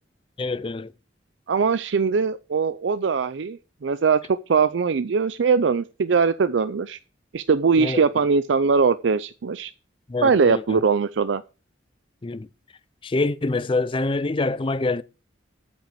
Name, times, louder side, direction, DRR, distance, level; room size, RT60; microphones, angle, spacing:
voice 1, 0.4-0.9 7.8-8.0 10.1-10.8 12.2-12.5 13.0-15.0, left 3 dB, 25° left, 0.4 m, -25 dB
voice 2, 1.5-7.0 7.3-9.7 10.2-11.4, right 5 dB, 75° right, 0.5 m, -21 dB
8.6 x 5.9 x 7.6 m
head